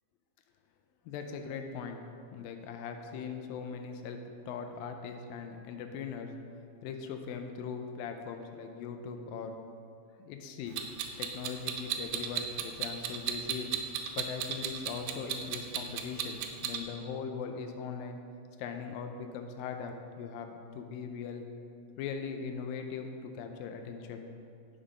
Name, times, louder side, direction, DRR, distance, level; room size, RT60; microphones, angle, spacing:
voice 1, 1.1-2.0 2.3-4.2 4.5-6.3 6.8-9.6 10.2-10.9 11.2-13.7 14.2-18.2 18.6-21.4 22.0-24.3, left 6 dB, 85° left, 5 dB, 2.1 m, -40 dB
Clock, 10.8-16.8, right 9 dB, 90° right, 2.7 m, -34 dB
8.8 x 7.0 x 5.5 m, 2.3 s
omnidirectional pair, 4.7 m